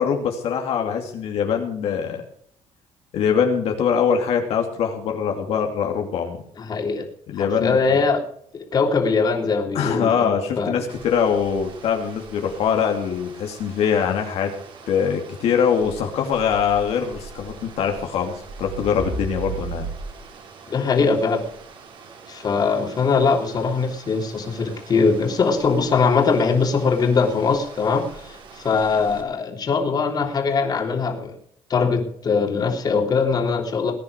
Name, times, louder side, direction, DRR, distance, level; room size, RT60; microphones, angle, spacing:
voice 1, 0.0-2.2 3.1-6.4 7.3-7.7 9.7-14.5 14.9-19.9, left 7 dB, 65° left, 2 dB, 2.7 m, -23 dB
voice 2, 6.6-7.1 7.4-8.2 8.5-10.7 20.7-21.4 22.3-31.3 31.7-33.9, left 4 dB, 35° left, 3 dB, 3.3 m, -21 dB
sound 1, 10.9-29.2, right 5 dB, 50° right, 4.2 m, -40 dB
20.5 x 10.0 x 5.1 m, 0.64 s
cardioid pair, 135°, 11 cm